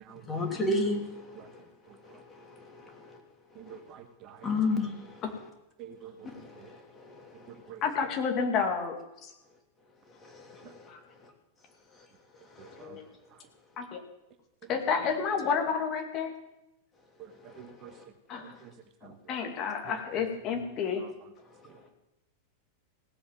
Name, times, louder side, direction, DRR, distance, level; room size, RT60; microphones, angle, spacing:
voice 1, 0.3-1.6 2.0-3.2 3.7-3.8 4.4-5.2 6.2-7.5 10.2-10.9 11.2-11.3 12.5-12.9 17.5-18.0, left 2 dB, 20° left, 2 dB, 3.0 m, -34 dB
voice 2, 3.6-4.4 5.8-6.3 6.6-6.7 7.7-7.8 12.6-13.0 17.2-17.3 17.6-17.9 18.6-18.7 19.0-19.1, right 9 dB, 35° right, 7 dB, 1.3 m, -47 dB
voice 3, 7.8-9.0 9.2-9.3 10.9-11.0 12.8-13.1 13.8-14.0 14.7-16.3 18.3-18.6 19.0-21.0, left 6 dB, 35° left, 3 dB, 2.4 m, -30 dB
17.0 x 8.5 x 7.5 m, 0.89 s
figure-of-eight pair, 90°, 0 cm